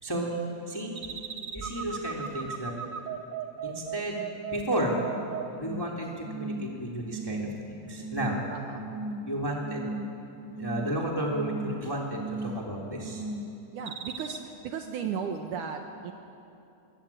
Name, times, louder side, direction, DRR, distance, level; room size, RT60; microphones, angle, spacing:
voice 1, 0.0-0.4 0.7-0.9 1.5-2.7 3.6-4.2 4.5-5.0 5.5-8.4 9.2-9.9 10.5-13.2, right 1 dB, 5° left, -1 dB, 2.9 m, -32 dB
sound 1, 1.0-5.9 6.3-6.7 7.1-7.6 8.0-8.4 8.8-9.3 9.7-10.2 10.5-11.0 11.3-11.8 12.2-12.7 13.0-13.5 13.9-14.4, right 4 dB, 85° right, 1.0 m, -36 dB
voice 2, 8.5-8.9 13.7-16.1, right 6 dB, 70° right, 4 dB, 2.5 m, -35 dB
25.0 x 22.5 x 8.8 m, 2.8 s
omnidirectional pair, 4.1 m